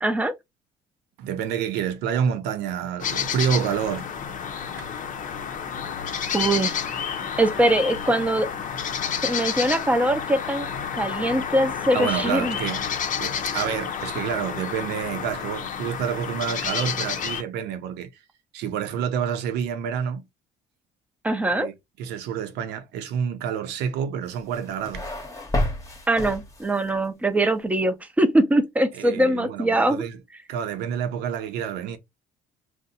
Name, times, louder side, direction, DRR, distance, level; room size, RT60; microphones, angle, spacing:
voice 1, 0.0-0.3 6.3-6.7 7.4-8.5 9.2-10.7 10.9-12.6 21.2-21.7 26.1-30.0, right 1 dB, 10° right, 0.6 m, -22 dB
voice 2, 1.2-4.1 4.8-4.9 5.9-6.1 11.9-12.8 13.2-18.1 18.5-20.3 21.6-21.7 22.0-25.1 29.0-30.2 30.5-32.0, right 8 dB, 85° right, 0.6 m, -28 dB
sound 1, 3.0-17.4, left 7 dB, 50° left, 0.6 m, -30 dB
sound 2, 24.3-27.0, left 1 dB, 20° left, 0.9 m, -30 dB
2.6 x 2.1 x 4.0 m
cardioid pair, 110°, 17 cm